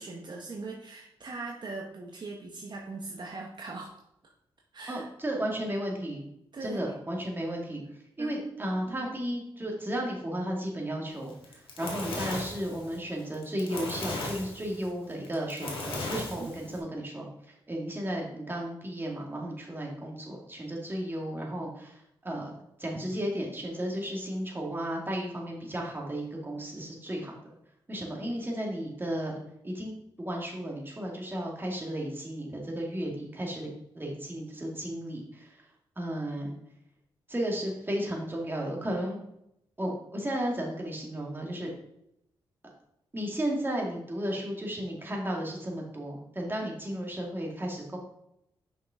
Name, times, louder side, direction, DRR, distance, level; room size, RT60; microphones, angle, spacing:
voice 1, 0.0-4.0 4.7-5.0 6.5-6.8 8.2-8.4 8.9-9.1 16.4-16.7 46.9-47.0, right 3 dB, 50° right, 0 dB, 1.0 m, -40 dB
voice 2, 4.9-6.2 6.6-7.8 8.2-22.5 22.8-27.3 27.9-29.4 29.6-29.9 30.2-33.7 33.9-35.7 36.0-36.5 37.3-39.2 39.8-41.7 43.1-48.0, right 1 dB, 25° right, -1 dB, 2.2 m, -34 dB
Fire, 11.3-16.8, left 2 dB, 70° left, 1.7 m, -36 dB
5.8 x 5.4 x 3.7 m, 0.79 s
cardioid pair, 60°, 9 cm